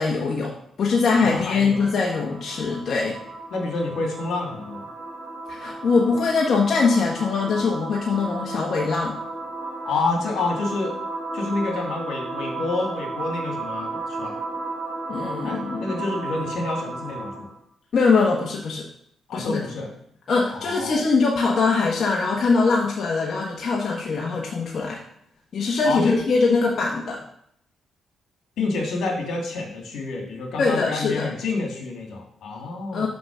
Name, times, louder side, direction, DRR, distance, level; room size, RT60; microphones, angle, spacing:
voice 1, 0.0-3.2 5.5-9.2 15.1-16.1 17.9-18.9 19.3-19.6 20.3-25.0 25.5-27.2 30.6-31.3 32.9-33.1, left 4 dB, 50° left, -2 dB, 1.2 m, -22 dB
sound 1, 0.9-17.6, right 3 dB, 65° right, 3.6 m, -34 dB
voice 2, 1.1-1.8 3.5-4.9 9.9-10.9 11.3-14.4 15.4-17.5 19.3-19.9 20.5-21.0 25.8-26.2 28.6-33.1, left 3 dB, 75° left, 1 dB, 2.1 m, -28 dB
6.0 x 5.7 x 6.1 m, 0.69 s
cardioid pair, 115°, 0 cm